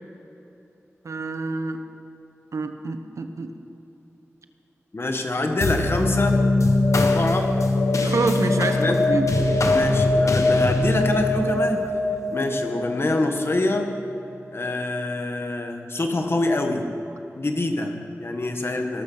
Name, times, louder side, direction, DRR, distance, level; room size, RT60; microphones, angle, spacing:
voice 1, 1.0-1.8 2.5-3.5 8.0-9.3, right 3 dB, 80° right, 7 dB, 1.1 m, -27 dB
voice 2, 4.9-6.4 6.9-7.6 8.8-9.2 9.6-11.9 12.3-13.9 14.5-16.9 17.4-19.0, left 2 dB, 50° left, 4 dB, 1.8 m, -25 dB
sound 1, 5.6-14.3, left 2 dB, 80° left, 1.4 m, -22 dB
18.5 x 13.0 x 5.9 m, 3.0 s
wide cardioid pair, 50°, 5 cm